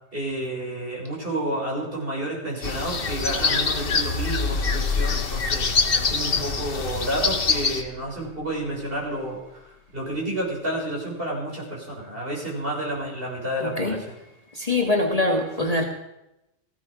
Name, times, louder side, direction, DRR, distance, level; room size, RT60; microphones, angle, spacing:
voice 1, 0.1-14.0, right 1 dB, 45° right, -3 dB, 6.2 m, -30 dB
sound 1, 2.6-7.8, left 4 dB, 50° left, 1.4 m, -25 dB
sound 2, 3.9-8.4, left 4 dB, 70° left, 1.6 m, -31 dB
voice 2, 13.6-14.0 14.5-15.9, left 2 dB, 30° left, 1 dB, 1.7 m, -23 dB
17.5 x 16.0 x 5.1 m, 0.90 s
omnidirectional pair, 1.3 m